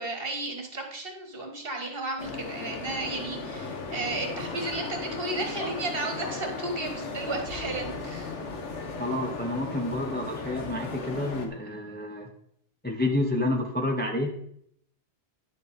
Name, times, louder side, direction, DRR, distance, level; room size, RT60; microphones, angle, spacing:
voice 1, 0.0-8.4, right 2 dB, 55° right, 3 dB, 1.8 m, -33 dB
sound 1, 2.2-11.5, left 4 dB, 85° left, 1.4 m, -36 dB
voice 2, 9.0-12.3 12.8-14.3, left 1 dB, 10° left, 1 dB, 1.0 m, -29 dB
10.0 x 6.7 x 4.2 m, 0.68 s
omnidirectional pair, 1.2 m